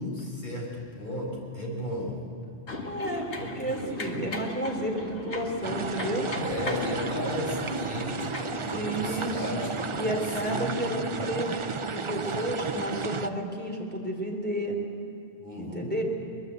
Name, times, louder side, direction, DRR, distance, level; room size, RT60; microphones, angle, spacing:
voice 1, 0.0-2.2 3.4-3.9 6.3-10.7 12.1-13.1 15.4-16.0, left 1 dB, 45° left, -2 dB, 5.3 m, -35 dB
sound 1, 2.7-10.6, left 2 dB, 75° left, 2.3 m, -38 dB
voice 2, 2.8-6.3 8.7-9.6 10.0-11.6 11.9-14.8 15.6-16.0, right 1 dB, 10° left, -1 dB, 3.4 m, -31 dB
sound 2, 5.6-13.3, right 5 dB, 35° right, 0.6 m, -33 dB
23.0 x 21.0 x 8.1 m, 2.3 s
omnidirectional pair, 1.2 m